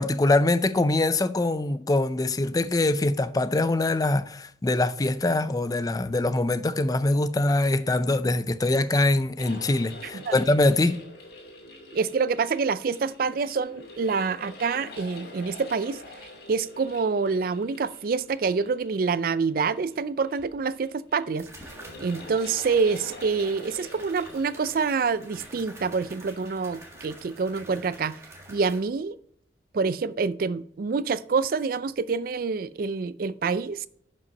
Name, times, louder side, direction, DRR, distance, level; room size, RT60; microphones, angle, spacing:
voice 1, 0.0-11.0, left 2 dB, 20° left, 0.4 m, -23 dB
sound 1, 9.4-28.0, left 2 dB, 60° left, 2.4 m, -46 dB
voice 2, 11.9-16.0 16.5-21.5 22.0-28.2 28.5-29.2 29.7-33.9, right 5 dB, 55° right, 0.4 m, -27 dB
sound 2, 20.4-20.5 21.4-28.8, right 1 dB, 15° right, 1.7 m, -47 dB
11.0 x 5.4 x 4.1 m
head